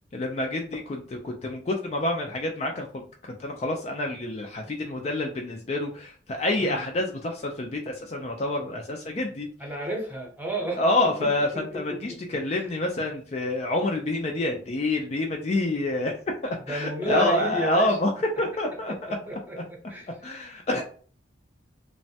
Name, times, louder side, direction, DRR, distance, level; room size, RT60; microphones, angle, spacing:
voice 1, 0.1-9.5 10.8-16.1 16.4-18.1 18.4-19.2 20.2-20.8, left 1 dB, 35° left, 2 dB, 0.3 m, -27 dB
voice 2, 9.6-12.2 12.5-12.7 16.7-18.0 18.9-19.0 19.3-20.1 20.7-20.8, right 1 dB, 10° right, -1 dB, 0.7 m, -32 dB
3.1 x 2.1 x 2.7 m, 0.44 s
head